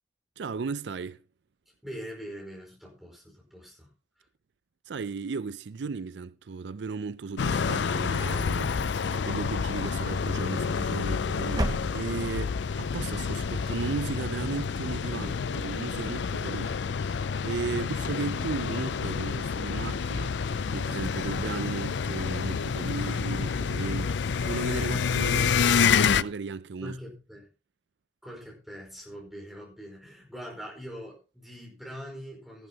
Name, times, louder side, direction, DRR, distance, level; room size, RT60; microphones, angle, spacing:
voice 1, 0.4-1.2 4.9-27.0, right 4 dB, 80° right, 0.5 m, -36 dB
voice 2, 1.8-3.9 4.2-4.3 15.2-15.5 26.8-27.5 28.2-32.7, equal, ahead, 5.0 m, -43 dB
sound 1, 7.3-8.5 9.0-9.7 10.6-11.1 11.5-12.4, right 1 dB, 20° right, 0.8 m, -35 dB
sound 2, 7.4-26.2, left 6 dB, 85° left, 0.5 m, -28 dB
14.5 x 12.0 x 2.9 m
head